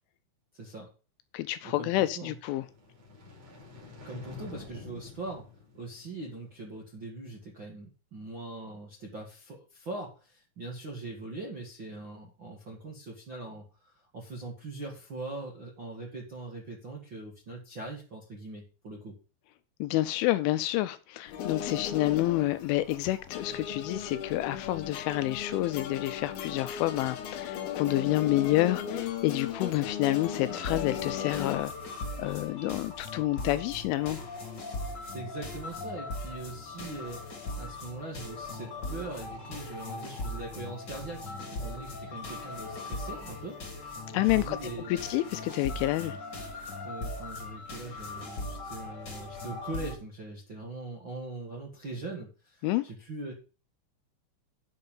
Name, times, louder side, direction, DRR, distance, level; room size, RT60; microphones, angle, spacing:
voice 1, 0.5-0.9 1.6-2.4 4.0-5.5 5.7-19.1 34.8-45.0 46.8-53.3, right 2 dB, 55° right, 1.3 m, -42 dB
voice 2, 1.3-2.6 19.8-31.7 32.2-34.2 44.1-44.6 44.9-46.2 52.6-52.9, left 16 dB, 80° left, 2.9 m, -28 dB
sound 1, 2.4-6.7, left 4 dB, 30° right, 5.7 m, -48 dB
sound 2, 21.3-31.6, left 8 dB, 65° left, 2.6 m, -36 dB
sound 3, 30.5-49.9, left 2 dB, 30° left, 2.1 m, -39 dB
11.0 x 6.5 x 5.5 m
omnidirectional pair, 5.8 m